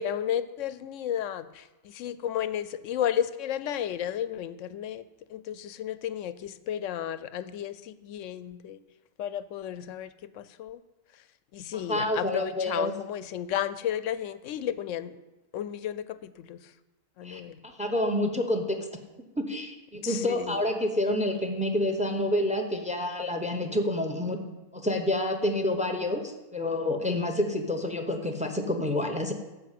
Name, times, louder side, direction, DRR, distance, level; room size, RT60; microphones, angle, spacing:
voice 1, 0.0-5.0 5.3-8.8 9.2-10.8 11.1-11.2 11.5-15.2 15.5-16.7 17.2-17.6 20.0-20.6, left 10 dB, 70° left, 15 dB, 0.9 m, -33 dB
voice 2, 11.7-12.9 17.2-18.8 19.4-24.5 24.7-29.3, left 1 dB, 5° right, 5 dB, 0.8 m, -28 dB
13.0 x 5.1 x 8.3 m, 1.1 s
omnidirectional pair, 1.4 m